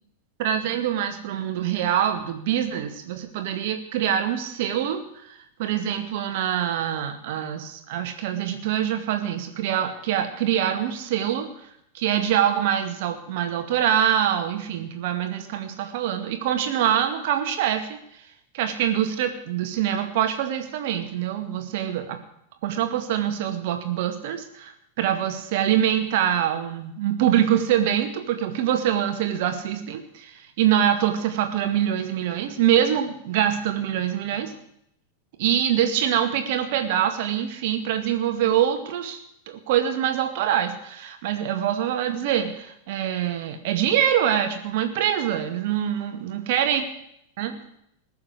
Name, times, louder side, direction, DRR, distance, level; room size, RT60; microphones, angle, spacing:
voice 1, 0.4-11.5 11.9-18.0 18.5-22.2 22.6-34.5 35.4-39.2 39.5-46.8 47.4-47.6, right 10 dB, 50° right, 6 dB, 2.1 m, -24 dB
19.5 x 7.1 x 8.5 m, 0.74 s
figure-of-eight pair, 90°, 0 cm